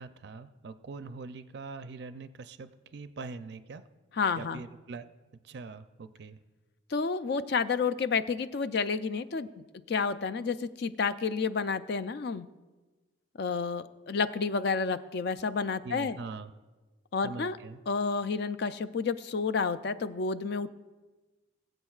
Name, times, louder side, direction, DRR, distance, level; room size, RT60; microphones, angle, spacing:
voice 1, 0.0-3.8 4.4-5.0 5.4-6.4 15.8-16.5 17.2-17.8, right 4 dB, 55° right, 11 dB, 0.4 m, -42 dB
voice 2, 4.2-4.6 6.9-9.5 9.9-12.5 13.4-16.2 17.1-17.6 17.9-20.7, left 5 dB, 55° left, 12 dB, 0.4 m, -30 dB
20.0 x 7.9 x 2.4 m, 1.2 s
head